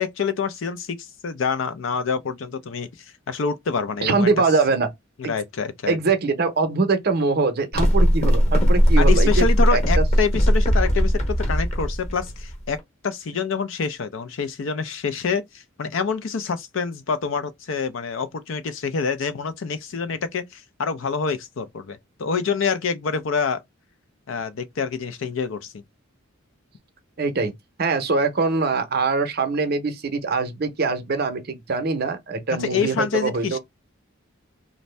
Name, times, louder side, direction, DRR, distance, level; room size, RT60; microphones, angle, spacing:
voice 1, 0.0-2.9 3.3-4.3 5.2-6.0 9.0-12.8 13.0-23.6 24.3-25.8 32.6-33.6, left 5 dB, 65° left, 0.5 m, -26 dB
voice 2, 4.0-4.9 5.2-5.3 5.9-9.5 9.7-10.0 27.2-27.5 27.8-33.6, right 4 dB, 50° right, 0.6 m, -23 dB
sound 1, 7.7-12.8, equal, 30° left, 1.0 m, -18 dB
2.6 x 2.0 x 3.2 m
head